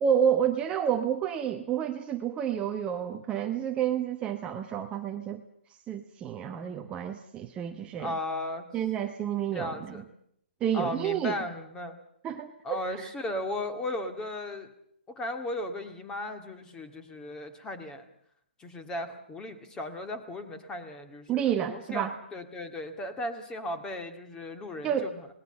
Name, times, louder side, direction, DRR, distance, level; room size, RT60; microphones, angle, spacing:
voice 1, 0.0-5.4 5.9-8.1 8.7-9.9 10.6-11.3 12.2-13.1 21.3-22.1 24.8-25.1, right 9 dB, 15° right, 5 dB, 1.1 m, -29 dB
voice 2, 8.0-8.7 9.5-10.1 10.7-12.0 12.6-14.7 15.2-18.1 18.6-25.3, left 1 dB, 10° left, 8 dB, 2.2 m, -36 dB
27.0 x 19.5 x 7.0 m, 0.70 s
figure-of-eight pair, 135°, 6 cm